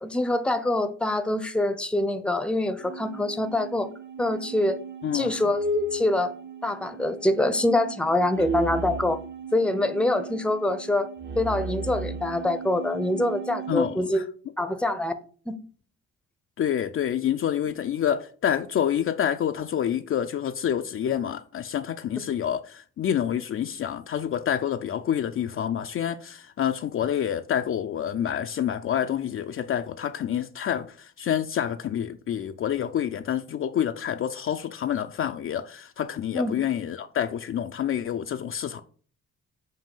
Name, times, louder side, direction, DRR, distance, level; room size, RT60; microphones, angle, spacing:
voice 1, 0.0-3.9 4.2-4.8 5.1-6.3 6.6-9.2 9.5-11.1 11.4-14.2 14.6-15.1 15.5-15.6 36.3-36.6, left 1 dB, 5° left, 0.6 m, -25 dB
sound 1, 2.8-14.0, right 2 dB, 35° right, 0.8 m, -35 dB
voice 2, 5.0-5.5 13.7-14.2 16.6-38.8, left 9 dB, 45° left, 0.4 m, -28 dB
7.4 x 2.7 x 5.4 m
cardioid pair, 90°, 30 cm